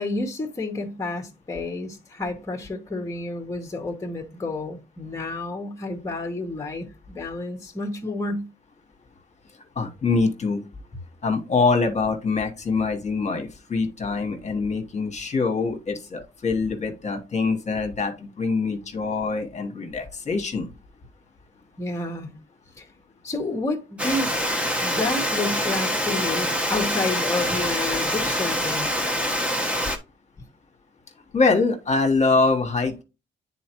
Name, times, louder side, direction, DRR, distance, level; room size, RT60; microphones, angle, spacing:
voice 1, 0.0-8.5 21.8-22.3 22.8-22.9 23.2-24.5 24.8-28.9, left 2 dB, 15° left, 1.1 m, -30 dB
voice 2, 9.7-10.6 11.2-20.7 31.3-33.0, left 4 dB, 35° left, 1.3 m, -24 dB
Water, 24.0-30.0, equal, 5° right, 1.2 m, -25 dB
9.4 x 4.1 x 3.0 m
cardioid pair, 95°, 20 cm